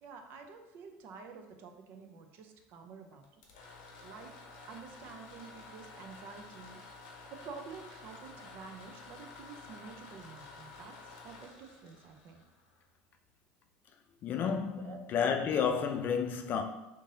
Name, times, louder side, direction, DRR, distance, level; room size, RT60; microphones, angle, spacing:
voice 1, 0.0-3.3 4.0-4.3 4.7-6.8 7.3-12.4 14.8-15.0, right 5 dB, 55° right, 0.6 m, -49 dB
sound 1, 3.2-13.0, left 3 dB, 85° left, 0.8 m, -51 dB
voice 2, 14.2-16.6, left 7 dB, 45° left, 0.5 m, -31 dB
3.7 x 2.6 x 3.9 m
supercardioid pair, 110°, 4 cm